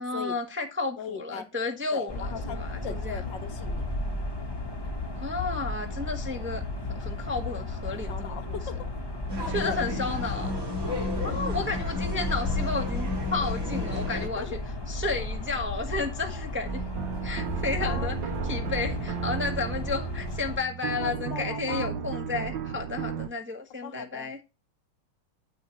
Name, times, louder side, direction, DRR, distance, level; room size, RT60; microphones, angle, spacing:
voice 1, 0.0-3.2 5.1-6.6 6.9-8.6 9.5-10.5 11.2-14.6 14.9-16.8 17.2-18.2 18.4-24.4, left 3 dB, 10° right, 0.8 m, -32 dB
voice 2, 1.0-1.5 1.9-3.9 7.9-8.8 9.3-9.8 11.1-11.4 14.2-14.6 17.8-18.1 21.0-21.9 23.8-24.3, left 8 dB, 65° left, 1.5 m, -39 dB
sound 1, 2.1-20.6, left 2 dB, 15° left, 1.1 m, -34 dB
sound 2, 9.3-14.3, left 2 dB, 40° right, 3.0 m, -32 dB
sound 3, 16.6-23.3, right 9 dB, 65° right, 1.4 m, -34 dB
9.1 x 8.1 x 3.1 m
omnidirectional pair, 2.3 m